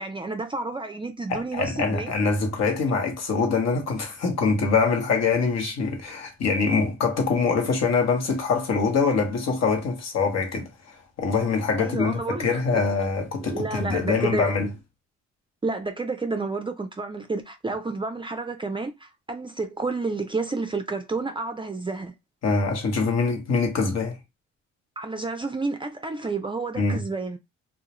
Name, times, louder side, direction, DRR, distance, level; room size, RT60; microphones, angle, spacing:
voice 1, 0.0-2.1 11.8-12.6 13.4-14.5 15.6-22.1 25.0-27.4, right 3 dB, 15° right, 0.4 m, -30 dB
voice 2, 1.3-14.7 22.4-24.2 26.8-27.0, left 4 dB, 60° left, 1.0 m, -24 dB
2.3 x 2.1 x 2.9 m
supercardioid pair, 70°, 30 cm